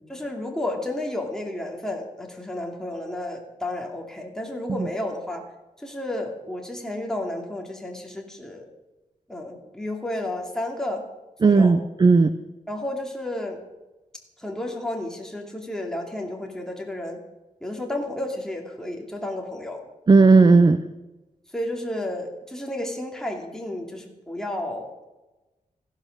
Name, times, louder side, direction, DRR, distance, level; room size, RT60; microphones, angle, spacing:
voice 1, 0.1-5.4 5.8-8.7 9.3-11.0 11.4-11.8 12.7-13.6 14.4-17.2 17.6-19.8 21.5-24.9, left 1 dB, 5° left, 0 dB, 2.5 m, -32 dB
voice 2, 11.4-12.3 20.1-20.8, right 4 dB, 30° right, 11 dB, 0.6 m, -15 dB
15.5 x 11.5 x 6.5 m, 1.1 s
wide cardioid pair, 145°, 14 cm